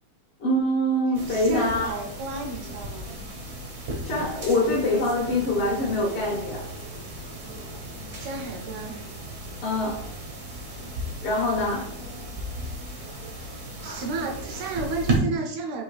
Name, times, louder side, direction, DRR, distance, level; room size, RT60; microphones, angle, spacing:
voice 1, 0.4-1.9 4.0-6.7 9.6-10.0 11.2-12.0, left 1 dB, 60° left, -4 dB, 1.7 m, -24 dB
sound 1, 1.1-15.2, right 1 dB, 60° right, 1.0 m, -35 dB
voice 2, 1.3-3.1 8.2-9.0 13.8-15.8, right 4 dB, 75° right, 2 dB, 1.8 m, -32 dB
4.6 x 2.9 x 3.1 m, 0.72 s
omnidirectional pair, 3.3 m